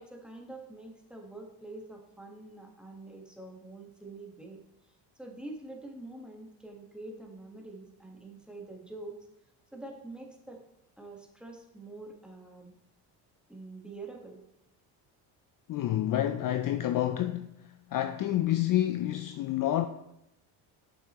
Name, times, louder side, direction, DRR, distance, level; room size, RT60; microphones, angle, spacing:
voice 1, 0.0-4.6 5.2-9.2 9.7-10.6 11.0-12.7 13.5-14.4, right 2 dB, ahead, 1.4 m, -45 dB
voice 2, 15.7-17.5 17.9-19.9, left 13 dB, 45° left, 0.5 m, -28 dB
7.7 x 6.0 x 3.0 m
supercardioid pair, 85°, 47 cm